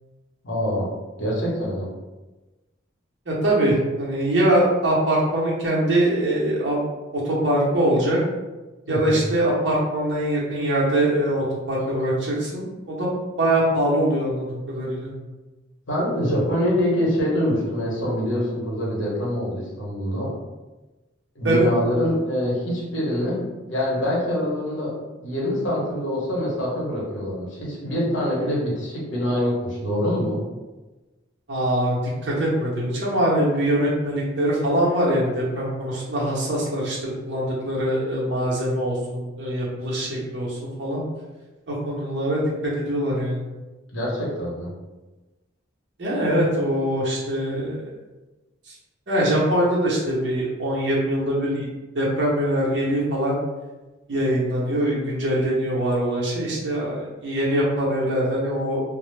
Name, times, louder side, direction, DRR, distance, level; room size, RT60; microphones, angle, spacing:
voice 1, 0.4-0.9 1.2-1.9 8.9-9.2 15.9-20.3 21.4-24.9 25.2-30.4 43.9-44.7, equal, 70° left, -5 dB, 0.8 m, -25 dB
voice 2, 3.3-6.8 7.1-8.2 8.9-13.1 13.4-15.1 21.4-21.6 31.5-37.0 37.2-41.0 41.7-43.5 46.0-47.8 48.7-48.8 49.1-51.7 51.9-53.4 54.1-58.8, right 1 dB, 60° right, -5 dB, 0.7 m, -23 dB
2.0 x 2.0 x 3.1 m, 1.1 s
head